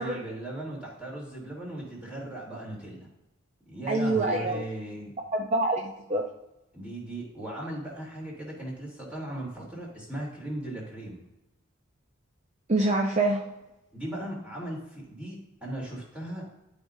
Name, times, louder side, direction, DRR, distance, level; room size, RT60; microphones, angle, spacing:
voice 1, 0.0-3.1 3.7-5.1 6.7-11.2 13.9-16.4, right 1 dB, 5° right, -5 dB, 2.8 m, -37 dB
voice 2, 3.9-4.6 5.3-6.2 12.7-13.5, right 2 dB, 35° right, 1 dB, 0.7 m, -26 dB
12.0 x 5.1 x 2.7 m, 0.93 s
head